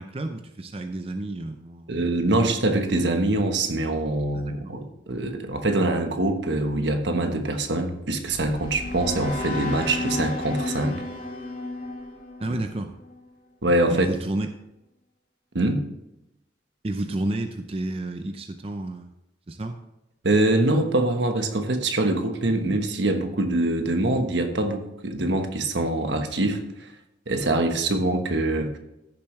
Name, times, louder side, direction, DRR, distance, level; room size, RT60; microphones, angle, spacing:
voice 1, 0.0-2.2 4.3-4.7 12.4-12.9 13.9-14.5 16.8-19.1 19.5-19.8, right 1 dB, 30° right, 6 dB, 0.6 m, -31 dB
voice 2, 1.9-11.0 13.6-14.1 15.5-15.8 20.2-26.9 27.3-28.8, right 2 dB, 75° right, 6 dB, 1.2 m, -24 dB
sound 1, 7.9-13.2, left 2 dB, 45° left, 2.3 m, -33 dB
14.5 x 7.1 x 3.2 m, 0.90 s
head